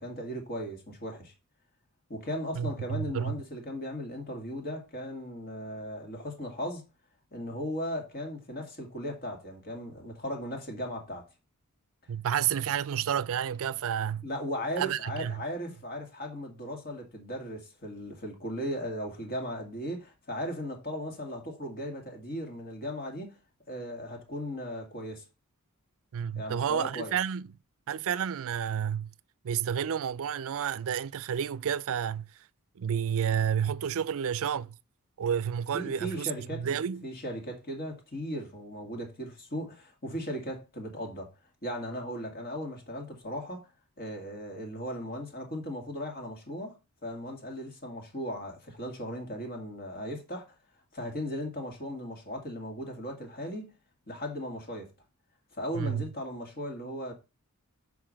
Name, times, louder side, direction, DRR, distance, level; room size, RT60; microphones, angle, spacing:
voice 1, 0.0-1.3 2.1-6.8 7.3-11.2 14.2-23.4 23.7-25.2 26.4-27.1 35.7-41.3 41.6-43.6 44.0-46.8 47.0-50.5 50.9-53.7 54.1-54.9 55.5-57.1, equal, 45° left, 2.1 m, -37 dB
voice 2, 2.6-3.3 12.1-14.3 14.8-15.3 26.1-27.5 27.9-29.1 29.4-32.2 32.8-34.8 35.2-37.0 55.7-56.0, right 8 dB, 65° right, 0.4 m, -30 dB
6.0 x 4.7 x 6.3 m
head